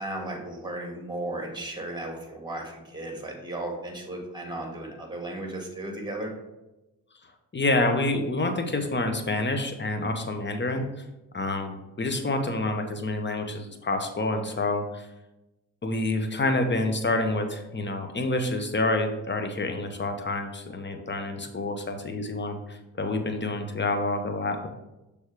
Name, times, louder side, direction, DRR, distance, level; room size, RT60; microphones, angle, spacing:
voice 1, 0.0-6.3, right 1 dB, 10° right, 1 dB, 2.2 m, -35 dB
voice 2, 7.5-11.0 11.3-15.1 15.8-24.7, left 2 dB, 25° left, 5 dB, 1.1 m, -28 dB
6.2 x 3.6 x 5.0 m, 0.99 s
supercardioid pair, 50°, 41 cm